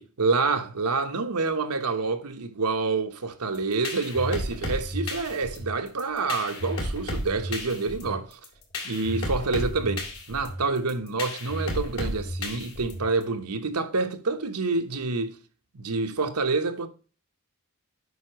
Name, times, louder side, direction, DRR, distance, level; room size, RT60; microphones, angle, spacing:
voice 1, 0.0-8.4 8.8-15.4 15.7-16.9, right 3 dB, 90° right, 1.0 m, -27 dB
sound 1, 3.5-13.2, left 1 dB, 65° left, 2.4 m, -33 dB
8.1 x 5.7 x 3.0 m
head